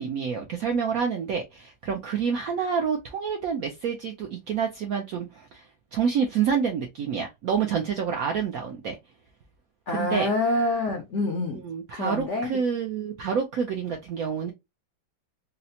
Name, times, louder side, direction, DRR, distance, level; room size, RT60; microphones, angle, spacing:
voice 1, 0.0-5.6 5.9-9.0 9.9-10.3 11.5-14.5, right 6 dB, 75° right, 0.8 m, -28 dB
voice 2, 9.9-11.6 11.9-12.6, left 2 dB, 70° left, 0.7 m, -26 dB
4.0 x 2.1 x 2.7 m
omnidirectional pair, 2.1 m